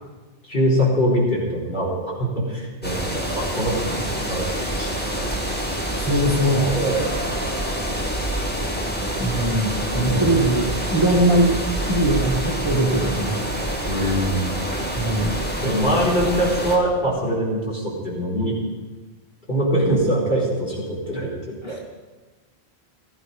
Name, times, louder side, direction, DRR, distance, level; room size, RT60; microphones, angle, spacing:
voice 1, 0.5-4.0 4.3-4.4 4.8-5.3 6.7-7.1 10.0-10.3 13.9-14.6 15.6-18.5 19.5-21.9, equal, 50° left, -5 dB, 4.6 m, -23 dB
sound 1, 2.8-16.8, right 1 dB, 10° left, 2.1 m, -26 dB
voice 2, 5.9-6.8 9.2-11.6 11.9-13.5 15.0-15.5 21.6-21.8, right 1 dB, 25° right, -1 dB, 2.0 m, -21 dB
17.0 x 14.0 x 5.4 m, 1.3 s
omnidirectional pair, 1.1 m